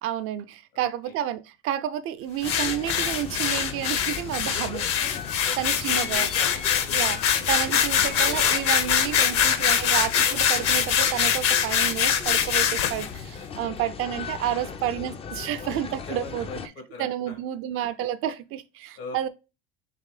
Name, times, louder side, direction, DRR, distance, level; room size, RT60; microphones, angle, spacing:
voice 1, 0.0-4.9 5.6-6.3 6.9-7.2 7.5-16.5 17.0-19.3, right 11 dB, 50° right, 0.4 m, -30 dB
voice 2, 0.7-1.1 5.4-7.6 9.4-9.5 9.8-9.9 14.7-14.8 16.1-17.4 19.0-19.3, left 3 dB, 80° left, 1.8 m, -42 dB
sound 1, 2.4-13.1, left 8 dB, 50° left, 0.7 m, -23 dB
sound 2, 2.4-16.7, left 6 dB, 20° left, 0.3 m, -38 dB
3.8 x 3.1 x 3.1 m
supercardioid pair, 95°, 29 cm